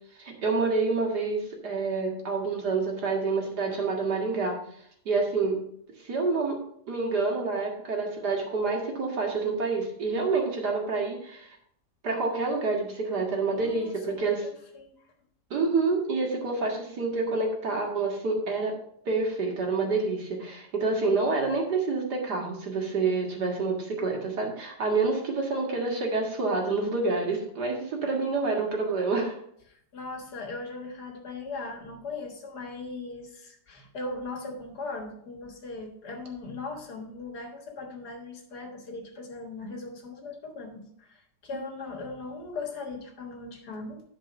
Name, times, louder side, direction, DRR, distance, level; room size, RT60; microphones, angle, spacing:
voice 1, 0.2-4.6 5.1-5.6 6.0-6.6 6.9-11.6 12.0-14.4 15.5-18.7 19.1-29.4, right 3 dB, 65° right, 0 dB, 2.4 m, -28 dB
voice 2, 13.5-15.0 29.7-44.0, left 3 dB, 65° left, 3 dB, 2.0 m, -39 dB
10.5 x 4.9 x 5.2 m, 0.68 s
omnidirectional pair, 1.9 m